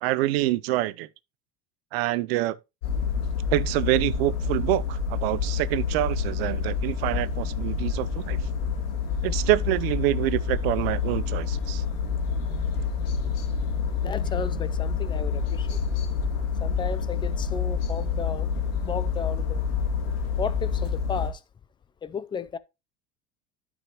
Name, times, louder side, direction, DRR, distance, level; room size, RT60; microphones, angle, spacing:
voice 1, 0.0-1.1 1.9-2.6 3.5-8.4 9.2-11.8, right 16 dB, 90° right, 0.6 m, -26 dB
sound 1, 2.8-21.3, left 5 dB, 90° left, 2.5 m, -28 dB
voice 2, 14.0-15.8 16.6-18.5 18.8-19.6 20.4-21.4 22.0-22.6, left 6 dB, 15° left, 0.4 m, -34 dB
12.0 x 5.0 x 2.9 m
cardioid pair, 140°, 29 cm